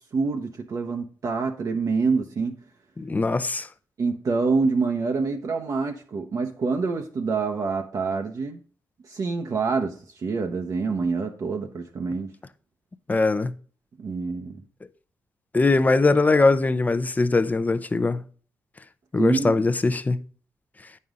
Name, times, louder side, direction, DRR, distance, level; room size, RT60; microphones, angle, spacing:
voice 1, 0.1-2.6 4.0-8.6 9.1-12.3 14.0-14.6 19.2-19.5, right 4 dB, 55° right, 0.9 m, -26 dB
voice 2, 3.0-3.7 13.1-13.5 15.5-18.2 19.1-20.2, left 3 dB, 25° left, 0.6 m, -21 dB
9.2 x 5.5 x 3.7 m
cardioid pair, 85°, 7 cm